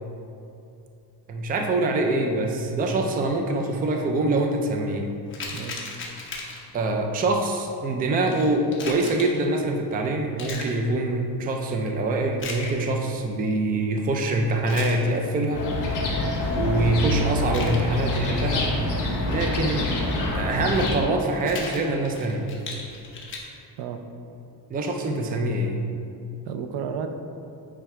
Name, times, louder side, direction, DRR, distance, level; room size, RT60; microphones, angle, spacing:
voice 1, 1.3-5.1 6.7-15.6 16.5-18.7 19.3-19.9 20.3-22.5 24.7-25.8, right 2 dB, 20° right, 3 dB, 0.4 m, -24 dB
sound 1, 5.3-6.7 8.3-9.4 10.4-10.8 12.3-12.8 14.5-15.0 17.4-17.8 20.6-20.9 21.4-23.4, left 3 dB, 30° left, 0.9 m, -36 dB
voice 2, 5.5-5.9 16.7-16.9 23.8-24.0 26.5-27.1, right 7 dB, 85° right, 7 dB, 0.7 m, -32 dB
sound 2, 15.5-21.0, left 2 dB, 45° left, 1.4 m, -26 dB
8.7 x 3.4 x 4.7 m, 2.6 s
cardioid pair, 175°, 42 cm